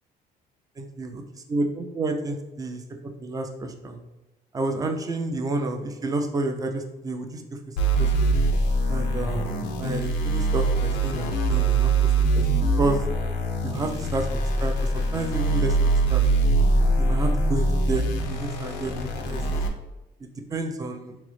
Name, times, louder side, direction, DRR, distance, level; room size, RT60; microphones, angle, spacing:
voice 1, 0.8-2.8 3.2-4.0 4.5-7.4 8.0-8.3 8.9-11.9 12.3-12.4 12.8-13.0 13.6-16.2 16.9-18.0 18.3-19.6 20.2-21.2, right 2 dB, 20° right, 4 dB, 0.4 m, -30 dB
sound 1, 7.8-19.7, right 2 dB, 85° left, 0.5 m, -23 dB
3.7 x 2.0 x 3.0 m, 0.98 s
cardioid pair, 110°, 17 cm